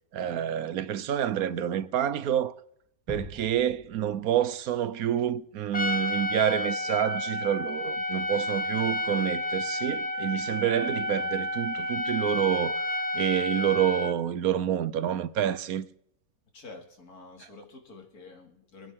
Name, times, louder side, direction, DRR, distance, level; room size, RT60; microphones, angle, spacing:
voice 1, 0.1-2.5 3.1-15.9, right 10 dB, 80° right, 1.2 m, -28 dB
sound 1, 3.1-5.0 5.4-5.5, equal, 15° right, 2.7 m, -44 dB
Trumpet, 5.7-14.2, left 1 dB, 10° left, 0.7 m, -30 dB
voice 2, 16.5-18.9, left 3 dB, 85° left, 2.9 m, -48 dB
27.0 x 9.9 x 3.7 m
omnidirectional pair, 1.6 m